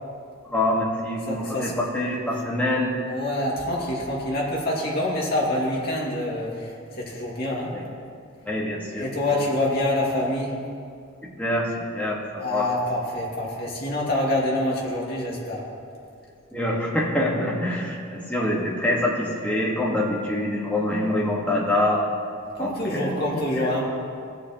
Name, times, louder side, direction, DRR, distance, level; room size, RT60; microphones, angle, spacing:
voice 1, 0.5-2.9 7.7-7.8 8.4-9.2 11.2-11.7 11.9-12.7 16.5-22.0 22.6-23.2 23.6-23.7, left 1 dB, 5° left, -5 dB, 1.7 m, -25 dB
voice 2, 1.3-1.7 3.1-7.8 8.9-10.6 12.4-15.6 22.5-23.8, left 1 dB, 50° left, -4 dB, 2.3 m, -26 dB
19.5 x 6.8 x 3.1 m, 2.4 s
head